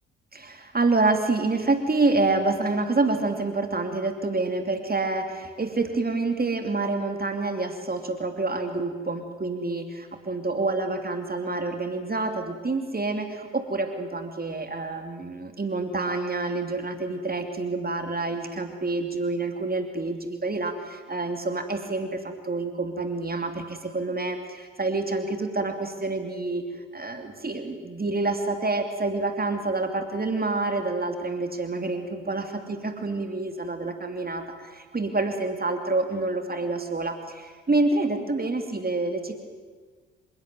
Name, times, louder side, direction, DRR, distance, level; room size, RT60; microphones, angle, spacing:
voice 1, 0.3-26.7 26.9-39.4, right 3 dB, 25° right, 6 dB, 2.9 m, -27 dB
28.0 x 16.5 x 9.3 m, 1.5 s
figure-of-eight pair, 40°, 35 cm